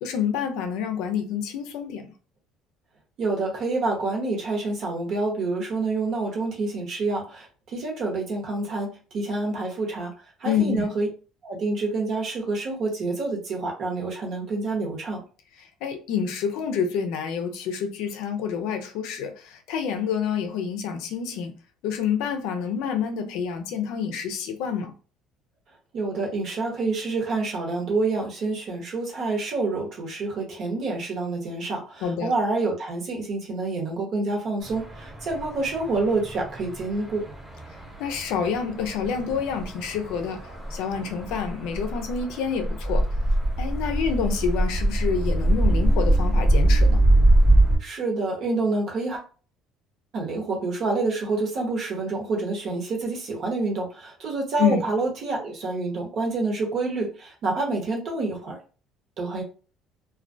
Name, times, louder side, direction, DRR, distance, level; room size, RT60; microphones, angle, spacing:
voice 1, 0.0-2.1 10.4-10.8 15.8-21.5 21.8-24.9 32.0-32.3 38.0-40.4 40.7-43.1 43.6-47.0 54.6-54.8, left 7 dB, 80° left, 0.4 m, -28 dB
voice 2, 3.2-10.1 10.4-11.1 11.4-15.2 25.9-37.3 47.8-49.2 50.1-58.6 59.2-59.4, right 3 dB, 50° right, 0.9 m, -27 dB
sound 1, 34.6-47.8, right 1 dB, 10° right, 0.7 m, -23 dB
2.2 x 2.1 x 2.5 m
cardioid pair, 135°, 0 cm